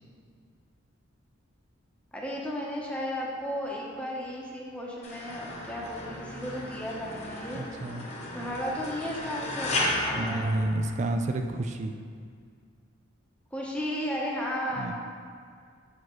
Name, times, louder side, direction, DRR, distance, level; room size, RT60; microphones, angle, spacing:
voice 1, 2.1-7.9 8.3-10.5 13.5-14.9, equal, 5° left, -4 dB, 0.8 m, -34 dB
sound 1, 5.0-11.3, left 1 dB, 30° left, 1.0 m, -34 dB
voice 2, 7.5-8.1 10.1-11.9 14.8-14.9, right 2 dB, 35° right, 6 dB, 0.3 m, -30 dB
7.5 x 6.1 x 3.1 m, 2.1 s
head